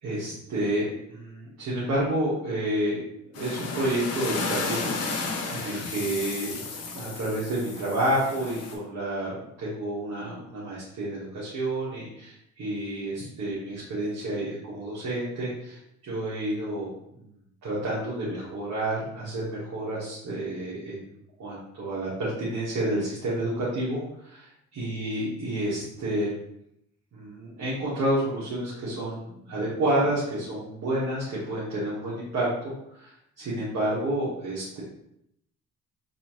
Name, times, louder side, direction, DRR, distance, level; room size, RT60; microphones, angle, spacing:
voice 1, 0.0-5.1 5.5-6.6 6.9-16.9 17.6-24.3 24.8-26.4 27.1-33.1 33.4-34.8, right 1 dB, 65° right, -8 dB, 1.5 m, -30 dB
sound 1, 3.3-8.7, left 4 dB, 55° left, 0.8 m, -33 dB
4.2 x 2.7 x 2.9 m, 0.76 s
cardioid pair, 90°, 30 cm